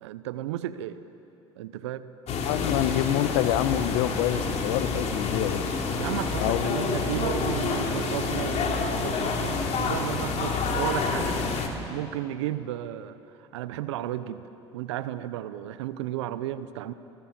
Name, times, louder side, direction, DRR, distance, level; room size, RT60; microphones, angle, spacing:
voice 1, 0.0-1.0 1.6-2.1 6.0-11.4 11.9-16.9, right 12 dB, 80° right, 14 dB, 0.8 m, -34 dB
sound 1, 2.3-11.7, left 4 dB, 50° left, 3.4 m, -28 dB
voice 2, 2.4-5.6 6.4-7.0, left 13 dB, 70° left, 13 dB, 1.1 m, -27 dB
28.0 x 19.0 x 7.4 m, 2.9 s
hypercardioid pair, 70°, 14 cm